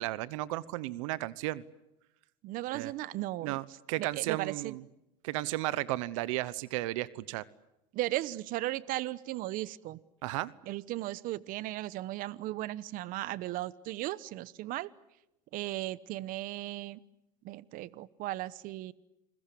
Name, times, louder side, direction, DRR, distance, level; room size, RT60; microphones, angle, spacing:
voice 1, 0.0-1.6 2.7-2.9 3.4-4.8 5.2-7.4 10.2-10.5, right 17 dB, 85° right, 19 dB, 1.0 m, -34 dB
voice 2, 2.4-3.6 4.0-4.7 7.9-10.0 10.7-14.9 15.5-17.0 17.4-18.9, right 16 dB, 60° right, 19 dB, 1.0 m, -36 dB
29.0 x 21.5 x 8.6 m, 0.90 s
supercardioid pair, 105°, 16 cm